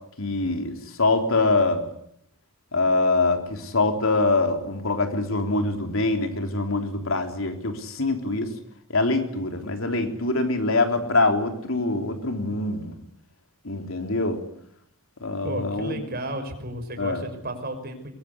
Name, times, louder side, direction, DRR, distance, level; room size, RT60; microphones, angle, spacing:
voice 1, 0.2-1.9 2.7-8.5 8.9-13.0 13.6-14.4 15.2-15.9 17.0-17.2, left 2 dB, 65° left, 5 dB, 3.8 m, -24 dB
voice 2, 15.4-18.1, right 1 dB, 45° right, 7 dB, 5.8 m, -33 dB
24.0 x 23.0 x 9.8 m, 0.73 s
head